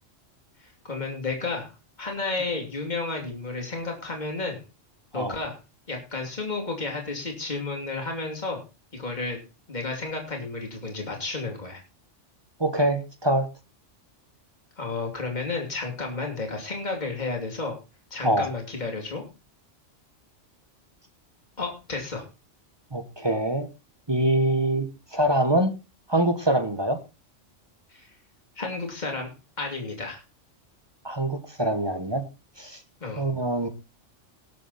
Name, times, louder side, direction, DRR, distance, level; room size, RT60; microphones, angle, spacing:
voice 1, 0.6-4.6 5.1-5.6 5.9-8.6 8.9-9.4 9.7-11.8 14.8-17.8 18.1-19.2 21.6-22.2 27.9-28.1 28.6-29.3 29.6-30.2 33.0-33.2, left 3 dB, 35° left, 1 dB, 3.1 m, -32 dB
voice 2, 12.6-13.5 18.2-18.5 22.9-23.7 24.1-25.7 26.1-27.0 31.0-32.3 32.6-32.8 33.2-33.7, right 1 dB, 20° right, 9 dB, 1.2 m, -24 dB
18.5 x 7.5 x 4.1 m, 0.29 s
omnidirectional pair, 1.3 m